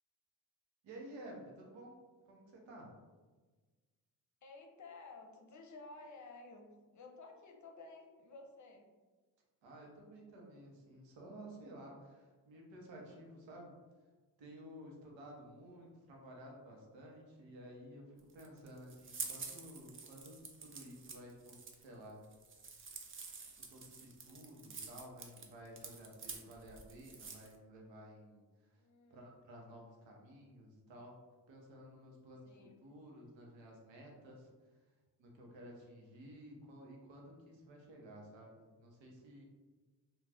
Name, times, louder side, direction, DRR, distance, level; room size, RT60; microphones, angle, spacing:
voice 1, 0.8-2.0 2.2-2.9 9.6-13.7 14.4-22.2 23.4-31.1 31.5-34.9 35.2-39.4, right 1 dB, 75° right, -1 dB, 0.9 m, -54 dB
voice 2, 4.4-6.7 6.9-8.9 28.8-29.3 32.4-32.8, left 3 dB, 40° left, 2 dB, 0.7 m, -54 dB
sound 1, 18.2-27.5, right 4 dB, 30° right, 0.5 m, -49 dB
2.4 x 2.3 x 3.3 m, 1.3 s
supercardioid pair, 55°, 45 cm